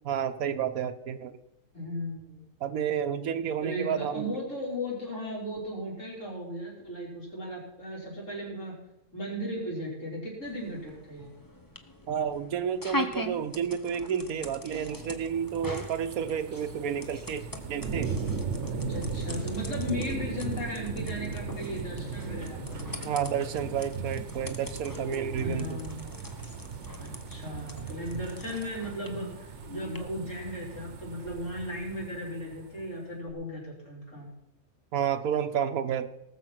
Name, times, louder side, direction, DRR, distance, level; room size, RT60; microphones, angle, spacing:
voice 1, 0.0-1.4 2.6-4.4 12.1-18.1 23.0-25.8 34.9-36.1, right 8 dB, 80° right, 8 dB, 1.2 m, -31 dB
voice 2, 1.7-2.4 3.6-8.8 9.1-11.3 18.6-23.3 25.4-26.5 27.0-34.3, equal, 60° left, -3 dB, 4.6 m, -36 dB
sound 1, 10.4-30.0, left 1 dB, 15° left, 0.9 m, -42 dB
sound 2, 14.7-32.9 33.3-33.4, right 5 dB, 55° right, 1.2 m, -37 dB
18.5 x 7.2 x 5.9 m, 0.83 s
omnidirectional pair, 1.5 m